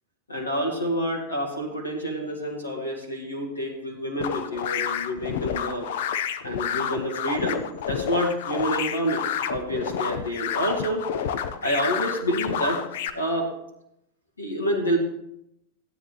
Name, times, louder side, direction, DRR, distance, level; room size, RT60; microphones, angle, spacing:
voice 1, 0.3-5.9 6.4-11.0 11.6-12.8 13.1-13.5 14.4-15.0, equal, 85° left, -1 dB, 2.0 m, -28 dB
sound 1, 4.2-13.1, left 8 dB, 60° left, 0.7 m, -29 dB
15.5 x 9.5 x 3.0 m, 0.81 s
figure-of-eight pair, 85°, 0 cm